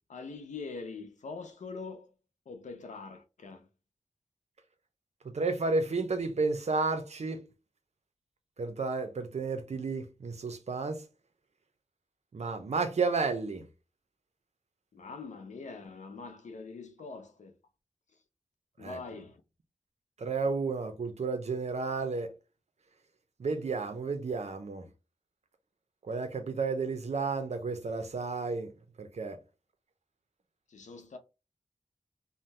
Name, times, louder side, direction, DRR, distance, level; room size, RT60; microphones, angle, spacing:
voice 1, 0.1-2.1 2.5-3.7 14.9-17.5 18.8-19.4 30.7-31.2, left 4 dB, 85° left, 0.5 m, -43 dB
voice 2, 5.3-7.5 8.6-11.0 12.3-13.6 18.8-19.0 20.2-22.3 23.4-24.9 26.1-28.7 29.0-29.4, right 4 dB, 65° right, 0.6 m, -32 dB
2.6 x 2.1 x 3.2 m
cardioid pair, 50°, 12 cm